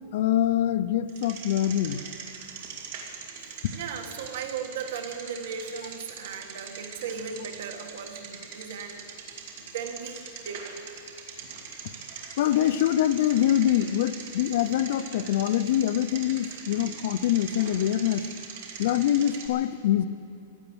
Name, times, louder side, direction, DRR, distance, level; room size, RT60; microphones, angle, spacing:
voice 1, 0.1-2.0 12.4-18.2 18.8-20.1, left 11 dB, 55° left, 13 dB, 0.6 m, -24 dB
Bicycle, 1.1-19.5, right 6 dB, 50° right, 2.3 m, -42 dB
voice 2, 3.7-9.1 9.6-10.9 19.2-19.3, right 6 dB, 65° right, 5 dB, 1.9 m, -37 dB
16.0 x 11.0 x 8.1 m, 2.7 s
supercardioid pair, 170°, 0 cm